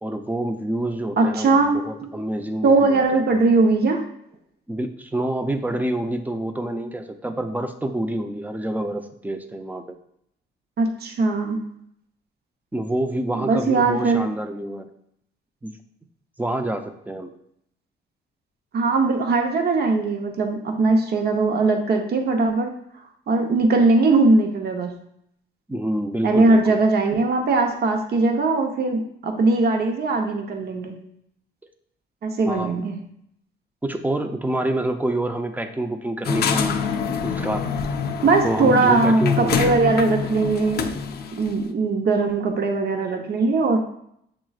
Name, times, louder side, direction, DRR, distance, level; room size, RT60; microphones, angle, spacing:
voice 1, 0.0-3.2 4.7-10.0 12.7-14.9 15.6-15.8 16.4-17.3 25.7-26.8 32.5-32.7 33.8-36.8 37.2-37.7 38.4-39.9, right 1 dB, 10° right, 7 dB, 0.5 m, -27 dB
voice 2, 1.2-2.1 2.6-4.0 10.8-11.6 13.3-14.2 18.7-22.7 23.3-25.0 26.2-31.0 32.2-33.0 38.2-41.0 41.3-43.8, right 3 dB, 55° right, 3 dB, 0.8 m, -20 dB
sound 1, 36.2-41.5, left 6 dB, 50° left, 0.5 m, -25 dB
7.4 x 3.0 x 2.4 m, 0.72 s
cardioid pair, 90°, 20 cm